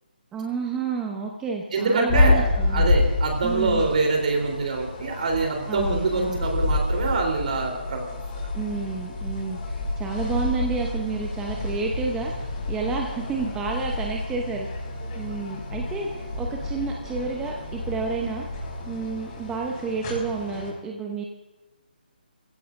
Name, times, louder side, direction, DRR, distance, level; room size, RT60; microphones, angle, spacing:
voice 1, 0.3-3.0 3.4-3.8 5.7-6.5 8.5-12.3 12.7-14.7 15.1-18.4 18.9-21.2, right 5 dB, 10° right, 0 dB, 0.9 m, -30 dB
voice 2, 1.7-8.1, right 3 dB, 50° right, 1 dB, 3.6 m, -25 dB
sound 1, 2.1-20.7, left 2 dB, 30° left, 5.1 m, -28 dB
22.5 x 16.0 x 2.6 m, 1.1 s
hypercardioid pair, 160°, 5 cm